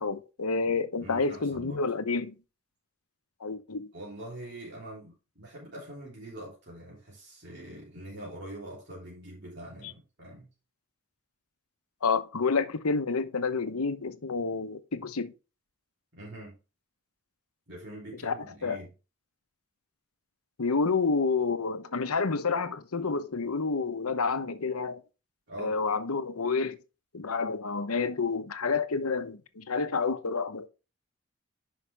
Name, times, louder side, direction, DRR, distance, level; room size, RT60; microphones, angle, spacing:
voice 1, 0.0-2.3 3.4-3.9 12.0-15.3 18.2-18.3 18.6-18.8 20.6-25.0 25.6-26.8 27.1-30.7, left 4 dB, 85° left, 1.0 m, -29 dB
voice 2, 1.0-1.8 3.9-10.5 16.1-16.6 17.7-18.9 25.5-25.8, right 1 dB, 50° right, 3.4 m, -44 dB
10.0 x 5.7 x 3.4 m
head